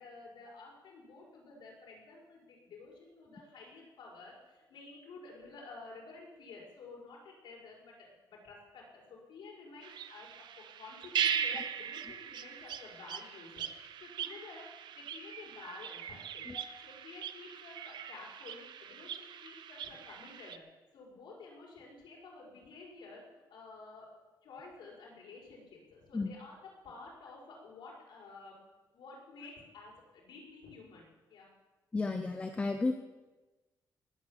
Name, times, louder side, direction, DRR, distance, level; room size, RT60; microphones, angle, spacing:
voice 1, 0.0-14.7 14.9-16.5 16.8-20.6 20.9-24.1 24.4-26.6 26.8-28.6 28.9-31.5, left 3 dB, 85° left, -3 dB, 5.7 m, -51 dB
sound 1, 9.8-20.6, right 8 dB, 75° right, 0.9 m, -39 dB
voice 2, 31.9-32.9, left 3 dB, 15° left, 6 dB, 0.8 m, -33 dB
19.0 x 8.7 x 7.5 m, 1.2 s
wide cardioid pair, 180°, 8 cm